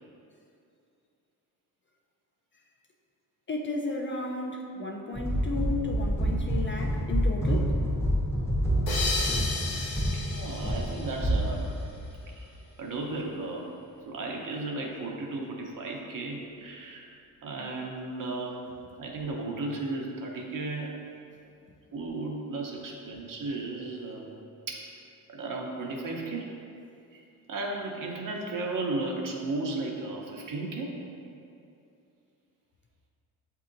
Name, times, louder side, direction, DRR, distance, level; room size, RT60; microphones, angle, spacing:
voice 1, 3.5-7.7, left 3 dB, 30° left, 0 dB, 0.5 m, -33 dB
sound 1, 5.1-12.4, equal, 5° left, 0.8 m, -28 dB
sound 2, 8.9-11.9, left 3 dB, 70° left, 0.9 m, -34 dB
voice 2, 10.1-11.6 12.3-12.5 12.8-13.7 14.1-17.1 17.4-18.6 19.0-21.0 21.9-24.3 24.7-24.9 25.3-26.5 27.1-27.2 27.5-31.0, right 2 dB, 55° right, 0 dB, 0.8 m, -34 dB
7.5 x 2.8 x 2.5 m, 2.6 s
cardioid pair, 85°, 38 cm